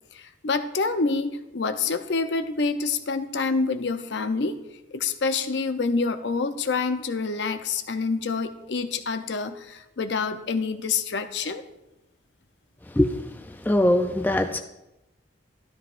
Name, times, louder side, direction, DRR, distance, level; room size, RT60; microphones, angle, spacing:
voice 1, 0.1-4.6 4.9-11.6, left 4 dB, 65° left, 9 dB, 0.6 m, -27 dB
voice 2, 13.7-14.6, left 1 dB, 10° left, 6 dB, 0.3 m, -21 dB
13.0 x 11.5 x 2.5 m, 0.97 s
head